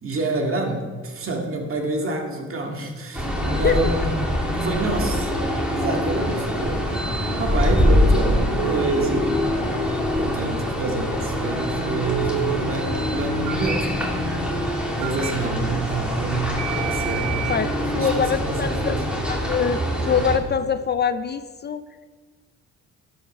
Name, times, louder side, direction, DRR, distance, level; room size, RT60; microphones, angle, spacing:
voice 1, 0.0-4.1 4.4-5.3 5.7-6.9 7.4-9.6 10.2-14.0 15.0-19.1, right 2 dB, 45° right, 1 dB, 2.0 m, -28 dB
sound 1, 3.1-20.4, left 1 dB, 5° right, 2.4 m, -24 dB
voice 2, 3.5-3.8 17.5-19.0 19.2-21.8, left 6 dB, 35° left, 11 dB, 0.4 m, -24 dB
Telephone, 8.6-9.1 12.1-12.6 13.5-13.8 15.0-15.3 16.6-17.6, right 17 dB, 80° right, 0.8 m, -29 dB
12.5 x 5.5 x 5.4 m, 1.5 s
cardioid pair, 90°, 30 cm